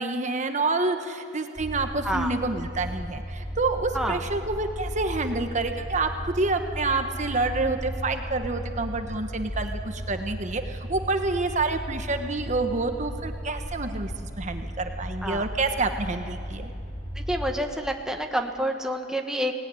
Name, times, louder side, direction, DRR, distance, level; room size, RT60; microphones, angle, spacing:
voice 1, 0.0-16.7, right 3 dB, 40° right, 6 dB, 1.2 m, -28 dB
sound 1, 1.6-17.5, equal, 20° left, 3.9 m, -35 dB
voice 2, 17.3-19.6, equal, 5° right, 3 dB, 1.3 m, -28 dB
23.5 x 18.5 x 9.7 m, 2.4 s
head